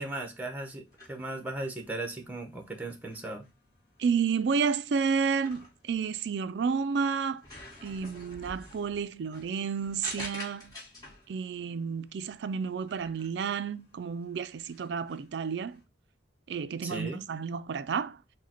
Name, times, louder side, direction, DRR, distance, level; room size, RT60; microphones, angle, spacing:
voice 1, 0.0-3.4 16.8-17.2, right 2 dB, 10° right, 0.8 m, -37 dB
sound 1, 0.9-15.8, left 2 dB, 20° left, 1.7 m, -49 dB
voice 2, 4.0-7.4 7.8-10.7 11.3-15.8 16.5-18.2, right 6 dB, 60° right, 0.3 m, -31 dB
4.8 x 2.2 x 4.2 m
head